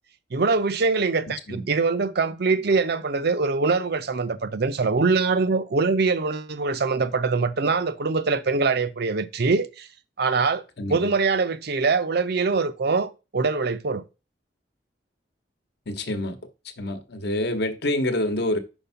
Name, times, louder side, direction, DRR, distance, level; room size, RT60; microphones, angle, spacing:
voice 1, 0.3-9.9 10.2-10.6 10.9-14.0, right 4 dB, 60° right, 0.6 m, -23 dB
voice 2, 10.8-11.1 15.9-16.4 16.8-18.6, left 1 dB, 60° left, 1.0 m, -27 dB
5.4 x 4.5 x 5.7 m
head